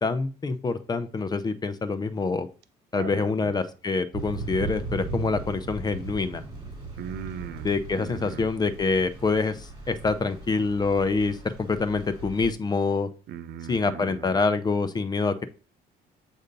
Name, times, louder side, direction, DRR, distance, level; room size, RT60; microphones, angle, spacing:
voice 1, 0.0-2.5 2.9-6.4 7.6-13.1 13.7-15.5, left 4 dB, 25° left, 0.6 m, -26 dB
voice 2, 2.9-3.6 7.0-7.7 8.0-8.5 13.3-14.4, right 8 dB, 75° right, 0.7 m, -39 dB
Thunder / Rain, 4.1-12.5, right 3 dB, 25° right, 2.5 m, -38 dB
7.8 x 2.7 x 5.2 m
cardioid pair, 110°, 17 cm